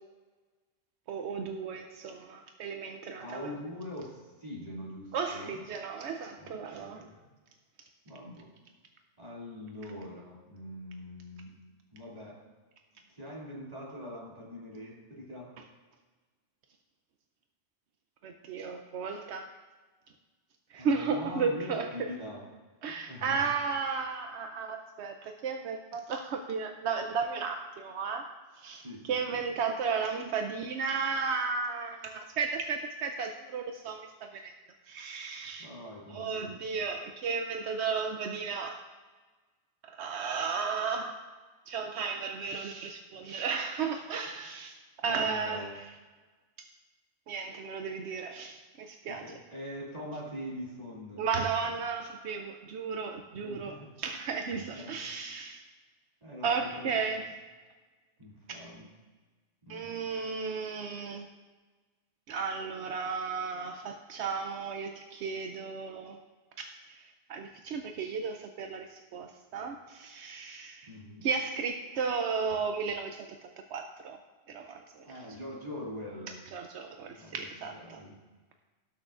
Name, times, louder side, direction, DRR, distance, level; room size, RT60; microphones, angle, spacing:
voice 1, 1.1-3.5 5.1-7.0 18.2-19.5 20.7-21.9 22.8-28.2 28.6-34.0 34.3-34.5 34.9-35.7 36.1-38.8 39.8-41.1 41.7-44.8 45.0-45.8 47.3-49.3 51.2-55.6 56.4-57.2 58.5-58.6 59.7-61.3 62.3-66.2 66.6-70.9 71.2-73.3 73.7-74.2 74.5-75.1 76.5-78.0, right 5 dB, 80° right, 5 dB, 0.9 m, -34 dB
voice 2, 3.2-5.6 6.4-7.3 8.0-8.5 9.2-11.5 11.9-12.4 13.1-15.5 20.7-22.4 22.9-23.5 28.8-29.4 35.6-36.6 45.0-45.8 49.0-51.3 51.6-51.7 53.3-53.9 54.7-55.0 56.2-57.0 58.2-58.9 59.6-60.1 70.8-71.3 75.0-76.4 77.0-78.2, left 1 dB, 35° right, -5 dB, 2.4 m, -43 dB
18.5 x 6.4 x 2.4 m, 1.3 s
omnidirectional pair, 1.1 m